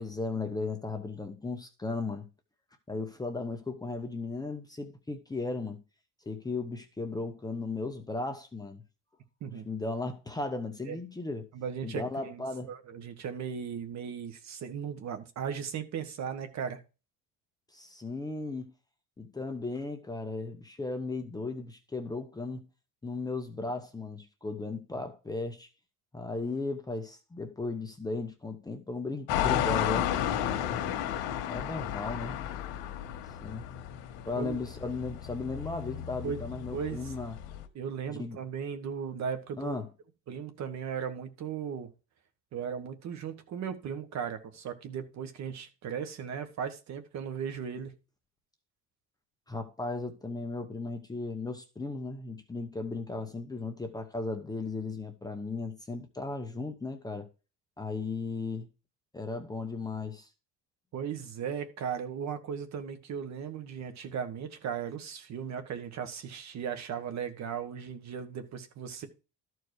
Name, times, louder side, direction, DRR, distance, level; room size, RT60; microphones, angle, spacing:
voice 1, 0.0-2.3 2.9-5.8 6.3-8.8 9.6-11.5 11.8-12.7 17.7-18.7 19.2-22.6 23.0-25.7 26.1-30.1 31.4-32.4 33.4-33.6 34.2-37.4 38.2-38.4 39.6-39.9 49.5-57.3 57.8-58.7 59.1-60.3, left 3 dB, 10° left, 0.9 m, -36 dB
voice 2, 11.5-16.8 34.4-34.6 36.2-36.4 36.7-37.1 37.7-39.7 40.3-41.9 42.5-47.9 60.9-69.1, right 7 dB, 45° right, 1.5 m, -37 dB
sound 1, 29.3-37.6, left 10 dB, 90° left, 1.5 m, -33 dB
13.0 x 4.7 x 4.8 m
cardioid pair, 150°, 37 cm